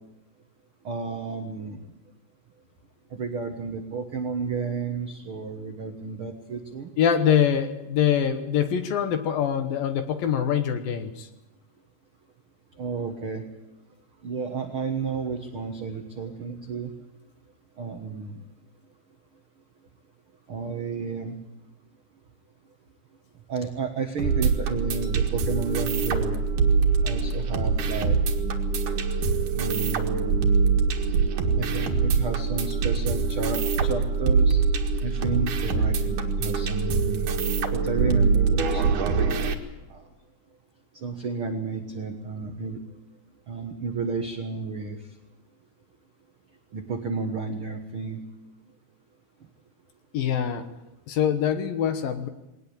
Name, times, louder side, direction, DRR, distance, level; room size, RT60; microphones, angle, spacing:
voice 1, 0.8-1.8 3.1-6.9 12.8-13.4 14.2-16.9 17.8-18.4 20.5-21.4 23.5-26.4 27.0-28.2 29.5-30.3 31.6-34.6 35.0-37.3 37.7-39.1 39.9-40.0 41.0-42.8 43.5-45.0 46.7-48.2, right 5 dB, 80° right, 4 dB, 1.2 m, -32 dB
voice 2, 7.0-11.3 50.1-50.7 51.1-52.3, left 8 dB, 65° left, 8 dB, 2.6 m, -24 dB
sound 1, 24.2-39.5, right 5 dB, 55° right, 2.7 m, -24 dB
21.0 x 18.5 x 8.8 m, 0.95 s
omnidirectional pair, 4.9 m